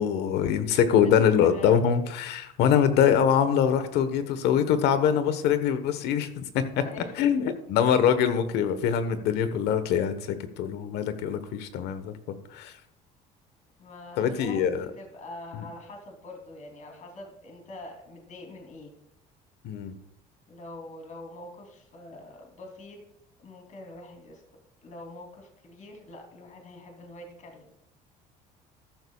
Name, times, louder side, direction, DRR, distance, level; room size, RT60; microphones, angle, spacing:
voice 1, 0.0-6.6 7.2-12.7 14.2-14.9 19.6-19.9, left 8 dB, 70° left, 11 dB, 1.2 m, -24 dB
voice 2, 1.0-1.7 6.7-7.1 13.8-18.9 20.5-23.0 23.4-24.4 24.8-27.7, left 2 dB, 45° left, 1 dB, 3.1 m, -44 dB
14.0 x 11.5 x 2.4 m, 0.81 s
supercardioid pair, 85°, 18 cm